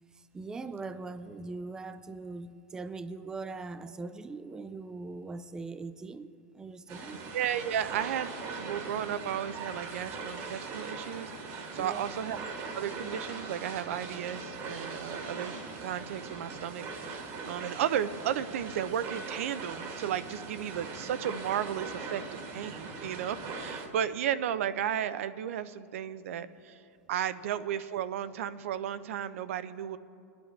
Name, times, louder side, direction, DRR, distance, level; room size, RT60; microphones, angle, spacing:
voice 1, 0.1-7.2 11.8-12.2, right 3 dB, 10° right, 0.3 m, -41 dB
sound 1, 6.9-23.9, right 4 dB, 45° right, 1.6 m, -41 dB
voice 2, 7.3-12.4 12.7-15.5 15.8-22.2 22.5-26.8 27.1-30.0, right 10 dB, 75° right, 0.5 m, -34 dB
22.0 x 10.5 x 3.2 m
supercardioid pair, 140°, 7 cm